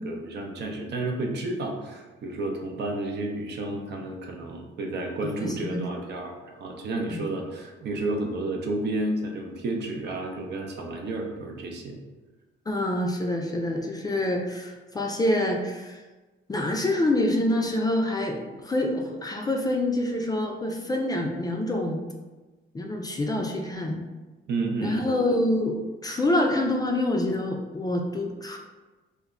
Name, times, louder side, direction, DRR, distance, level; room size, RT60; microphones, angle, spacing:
voice 1, 0.0-12.0 24.5-25.1, right 2 dB, 60° right, 1 dB, 0.5 m, -31 dB
voice 2, 5.4-5.8 7.1-7.3 12.7-16.0 16.5-22.0 22.7-24.0 24.8-28.6, left 1 dB, 20° left, 1 dB, 0.3 m, -26 dB
2.1 x 2.1 x 3.5 m, 1.2 s
cardioid pair, 90°, 20 cm